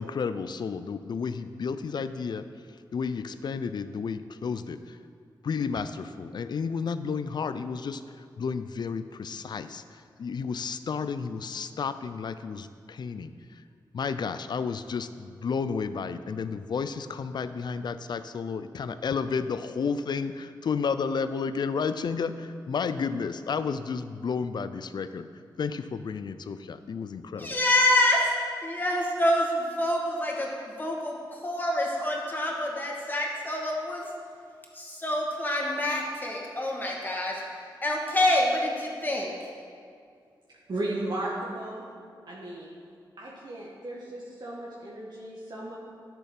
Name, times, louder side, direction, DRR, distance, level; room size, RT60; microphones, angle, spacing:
voice 1, 0.0-2.4 2.9-5.0 5.4-8.0 8.4-9.8 10.2-13.3 13.9-25.3 25.6-27.6, left 5 dB, 60° left, 12 dB, 0.5 m, -32 dB
voice 2, 27.4-34.1 34.7-39.5, left 1 dB, 25° left, -3 dB, 2.4 m, -27 dB
voice 3, 40.7-41.9 42.3-42.8 43.2-45.8, right 1 dB, 60° right, -5 dB, 1.6 m, -35 dB
10.5 x 6.9 x 5.8 m, 2.2 s
cardioid pair, 70°, 8 cm